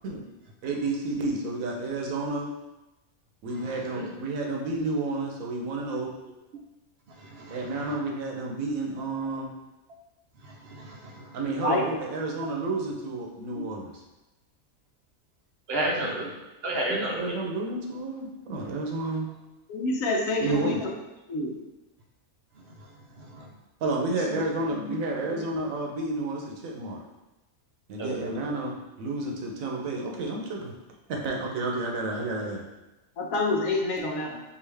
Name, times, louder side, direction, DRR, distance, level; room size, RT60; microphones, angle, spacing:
voice 1, 0.6-2.5 3.4-6.1 7.5-9.5 11.3-13.9 16.9-19.3 20.4-20.8 23.8-27.0 27.9-30.7 31.1-32.6, right 2 dB, 90° right, 0 dB, 1.2 m, -30 dB
voice 2, 10.7-11.1 13.6-13.7 15.7-16.3 16.6-17.4 23.3-23.5 28.0-28.3, right 1 dB, 60° right, 0 dB, 0.7 m, -31 dB
voice 3, 11.5-11.8 19.7-20.8 21.3-21.6 24.1-24.4 24.7-25.0 25.3-25.4 33.2-34.4, left 2 dB, 80° left, 0 dB, 1.2 m, -28 dB
4.7 x 2.7 x 3.3 m, 1.0 s
omnidirectional pair, 1.4 m